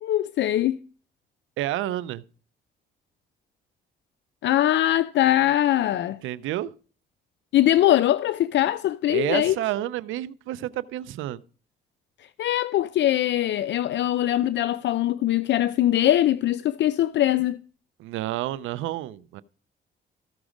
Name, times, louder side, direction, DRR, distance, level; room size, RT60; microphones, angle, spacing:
voice 1, 0.0-0.8 4.4-6.2 7.5-9.6 12.4-17.6, left 13 dB, 65° left, 0.5 m, -22 dB
voice 2, 1.6-2.2 6.2-6.7 9.1-11.4 18.0-19.4, right 14 dB, 85° right, 0.5 m, -29 dB
14.0 x 6.1 x 5.0 m
cardioid pair, 90°, 20 cm